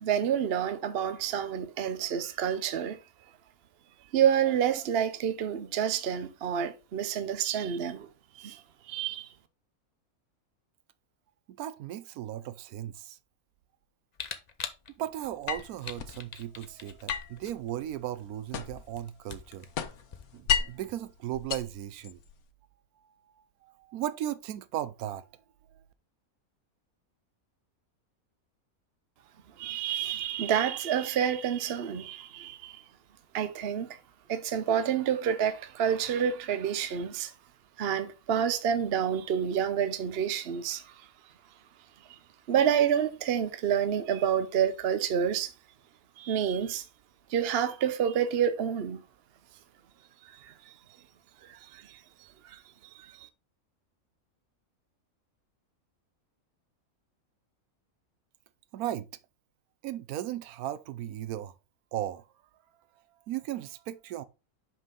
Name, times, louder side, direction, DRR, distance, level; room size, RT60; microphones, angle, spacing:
voice 1, 0.0-3.0 4.1-8.1 8.4-8.6 8.9-9.3 29.6-32.8 33.3-34.0 34.3-37.3 37.8-40.9 42.1-42.2 42.5-45.5 46.2-46.8 47.3-49.0 50.4-50.5 51.4-52.0 52.4-52.6 53.0-53.3, right 8 dB, 55° right, 0.8 m, -28 dB
voice 2, 11.6-13.2 14.9-19.7 20.3-22.2 23.6-25.2 58.7-59.1 59.8-61.5 61.9-62.2 63.3-64.2, right 12 dB, 85° right, 1.1 m, -36 dB
Camera, 14.1-20.9, left 6 dB, 45° left, 0.6 m, -45 dB
sound 1, 15.5-16.2 17.1-18.9 19.3-20.9 21.3-22.4, left 9 dB, 85° left, 1.3 m, -33 dB
5.5 x 5.4 x 3.7 m
omnidirectional pair, 1.5 m